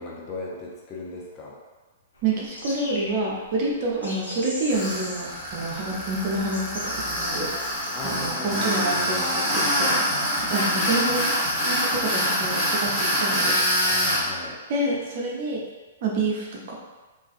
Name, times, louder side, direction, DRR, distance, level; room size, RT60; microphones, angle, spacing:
voice 1, 0.0-1.6 7.9-8.8 13.9-14.6, left 2 dB, 30° left, -3 dB, 0.5 m, -37 dB
sound 1, 2.1-8.5, left 1 dB, 80° left, 0.6 m, -40 dB
voice 2, 2.2-7.5 8.0-10.0 10.3-11.2 11.6-13.6 14.7-15.6 16.0-16.7, right 2 dB, 45° right, -3 dB, 0.6 m, -28 dB
Tools, 4.7-14.2, equal, 5° left, 1.0 m, -25 dB
2.5 x 2.3 x 2.4 m, 1.2 s
figure-of-eight pair, 115°, 0 cm